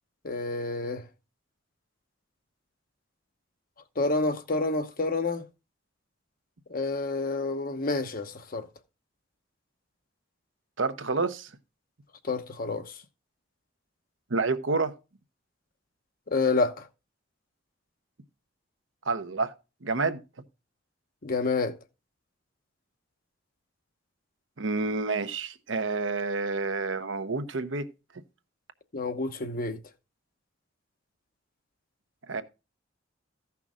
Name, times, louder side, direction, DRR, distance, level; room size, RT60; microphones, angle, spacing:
voice 1, 0.2-1.0 4.0-5.4 6.7-8.7 12.2-12.8 16.3-16.9 21.2-21.8 28.9-29.8, left 3 dB, 50° left, 1.0 m, -28 dB
voice 2, 10.8-11.5 14.3-14.9 19.1-19.5 19.8-20.2 24.6-27.9 32.3-32.4, right 3 dB, 85° right, 1.0 m, -29 dB
15.0 x 5.8 x 3.7 m
head